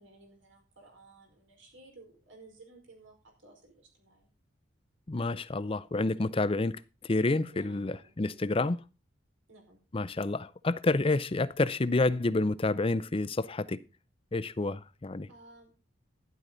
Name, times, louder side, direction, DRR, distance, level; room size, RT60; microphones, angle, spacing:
voice 1, 0.0-4.3 7.5-8.5 9.5-9.8 15.3-15.7, right 2 dB, 85° right, 4.9 m, -56 dB
voice 2, 5.1-8.8 9.9-13.8 14.3-15.3, left 2 dB, 30° left, 0.5 m, -29 dB
12.0 x 11.5 x 4.0 m
head